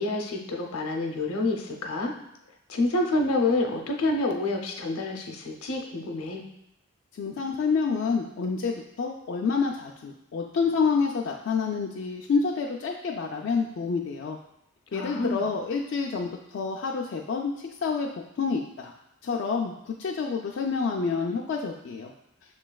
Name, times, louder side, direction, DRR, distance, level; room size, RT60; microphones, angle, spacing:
voice 1, 0.0-2.1 2.7-6.4 14.9-15.5, left 2 dB, 80° left, 2 dB, 0.7 m, -28 dB
voice 2, 7.1-14.4 14.9-18.1 18.4-18.9 19.2-22.1, left 5 dB, 55° left, -1 dB, 0.3 m, -28 dB
6.4 x 3.1 x 2.3 m, 0.85 s
head